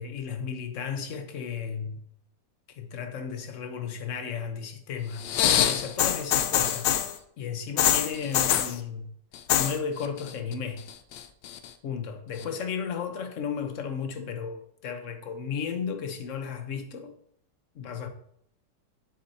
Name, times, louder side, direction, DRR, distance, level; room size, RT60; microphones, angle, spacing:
voice 1, 0.0-2.0 2.7-7.0 7.4-9.1 9.6-10.9 11.8-17.1 17.7-18.1, left 6 dB, 55° left, 1.1 m, -34 dB
sound 1, 5.2-7.1 7.8-8.7 9.3-9.8 10.0-10.5 10.9-11.7 12.4-12.5, left 10 dB, 85° left, 1.3 m, -24 dB
7.4 x 7.3 x 2.8 m
omnidirectional pair, 1.9 m